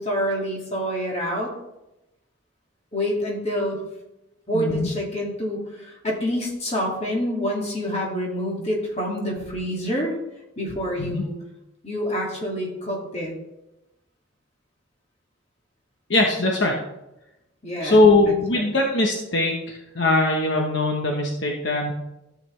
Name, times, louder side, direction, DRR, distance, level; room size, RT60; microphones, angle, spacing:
voice 1, 0.0-1.5 2.9-3.8 4.5-10.1 10.6-11.3 11.8-13.3 17.6-18.7, equal, 30° left, -2 dB, 2.3 m, -27 dB
voice 2, 4.5-4.9 11.0-11.2 16.1-16.7 17.8-21.9, left 2 dB, 60° left, 1 dB, 1.1 m, -21 dB
13.0 x 7.6 x 3.3 m, 0.94 s
head